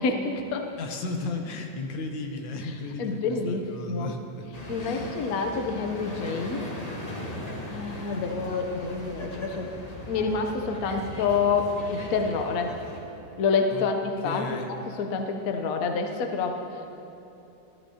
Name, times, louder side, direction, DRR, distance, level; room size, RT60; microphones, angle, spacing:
voice 1, 0.0-0.7 3.0-4.1 4.7-7.0 7.7-9.7 10.1-12.8 13.4-14.5 15.0-16.9, left 4 dB, 60° left, 4 dB, 1.0 m, -28 dB
voice 2, 0.8-4.5 4.8-5.2 13.7-13.8 14.2-14.7, left 3 dB, 90° left, 3 dB, 1.7 m, -35 dB
sound 1, 4.5-13.0, left 1 dB, 25° left, 1.1 m, -38 dB
14.5 x 13.0 x 2.8 m, 2.9 s
omnidirectional pair, 2.0 m